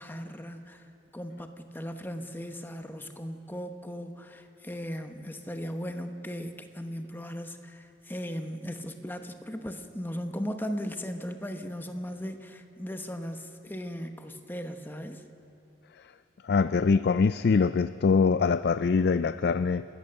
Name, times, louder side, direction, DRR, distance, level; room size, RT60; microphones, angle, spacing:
voice 1, 0.0-15.3, equal, 10° left, 7 dB, 1.0 m, -37 dB
voice 2, 16.4-19.8, left 5 dB, 60° left, 13 dB, 0.4 m, -23 dB
28.5 x 13.5 x 6.7 m, 2.8 s
head